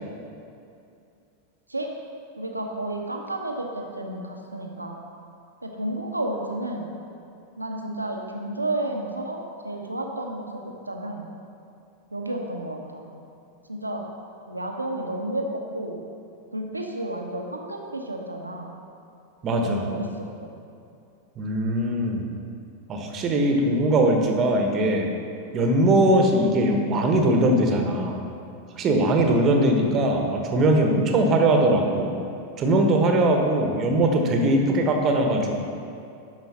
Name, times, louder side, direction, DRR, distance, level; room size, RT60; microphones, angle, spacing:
voice 1, 2.4-5.0 5.6-6.9 7.6-11.3 12.1-13.0 13.7-14.1 14.5-15.4 15.7-16.0 16.5-18.7 19.5-20.5, right 1 dB, 85° right, 1 dB, 1.1 m, -31 dB
voice 2, 19.4-19.9 21.4-22.3 22.9-25.1 25.5-28.2 28.8-32.1 32.6-35.5, right 1 dB, 30° right, 2 dB, 1.3 m, -21 dB
11.5 x 5.2 x 5.7 m, 2.5 s
figure-of-eight pair, 90°, 0 cm